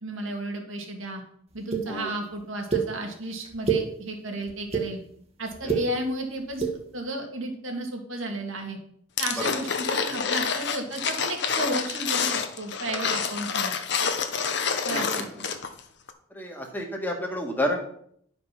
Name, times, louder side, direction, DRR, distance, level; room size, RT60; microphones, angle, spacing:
voice 1, 0.0-1.2 1.5-5.0 5.4-8.8 9.2-13.7 14.8-15.3, right 1 dB, 75° right, 3 dB, 2.1 m, -33 dB
sound 1, 1.7-1.8 2.7-2.8 3.4-3.8 4.5-4.8 5.5-5.8 6.5-6.7, right 6 dB, 30° right, 1.4 m, -25 dB
sound 2, 9.2-15.8 16.1-16.2, left 6 dB, 55° left, 1.0 m, -28 dB
voice 2, 16.3-17.8, left 1 dB, 10° left, 1 dB, 1.7 m, -30 dB
11.5 x 5.2 x 5.8 m, 0.67 s
head